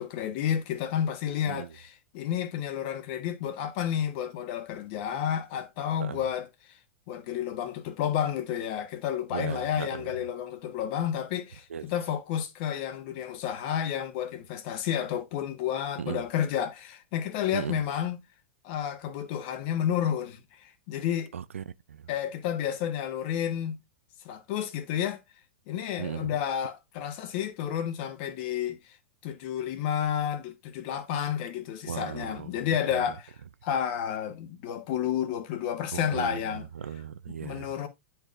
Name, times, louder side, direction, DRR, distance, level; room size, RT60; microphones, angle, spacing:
voice 1, 0.0-6.5 7.1-18.2 18.6-21.3 22.1-23.8 24.2-25.2 25.7-29.0 29.2-33.3 33.6-36.6 37.4-37.9, left 9 dB, 50° left, 1.3 m, -31 dB
voice 2, 9.3-10.1 11.7-11.8 16.0-16.2 17.5-17.8 21.3-22.1 26.0-26.4 31.9-32.7 32.9-33.1 35.9-37.8, right 8 dB, 75° right, 0.5 m, -37 dB
10.5 x 4.6 x 2.5 m
figure-of-eight pair, 100°, 7 cm